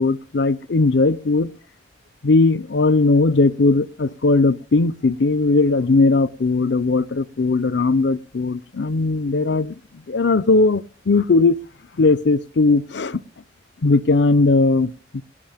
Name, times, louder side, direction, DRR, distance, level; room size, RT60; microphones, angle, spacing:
voice 1, 0.0-1.5 2.2-9.7 10.1-11.6 12.0-13.2 13.8-15.2, left 3 dB, 75° left, 0.6 m, -18 dB
20.5 x 17.0 x 3.5 m
head